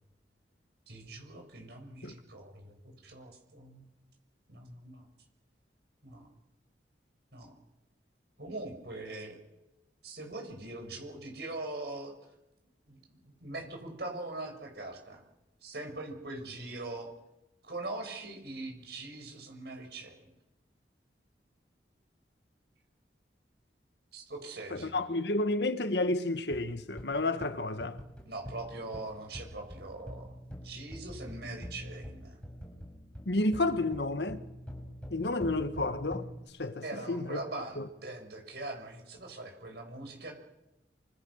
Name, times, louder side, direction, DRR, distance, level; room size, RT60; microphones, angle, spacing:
voice 1, 0.9-3.9 4.5-5.0 6.0-6.3 7.3-7.5 8.4-9.4 10.0-12.1 12.9-15.2 15.6-17.1 17.6-20.3 24.1-25.0 28.3-32.4 36.8-40.3, right 2 dB, 65° right, 7.0 m, -42 dB
voice 2, 24.7-28.0 33.2-34.4 35.1-36.3 36.6-37.4 37.8-37.9, left 2 dB, 70° left, 1.6 m, -31 dB
sound 1, 26.5-36.5, equal, 5° left, 5.8 m, -45 dB
29.0 x 25.5 x 6.5 m
head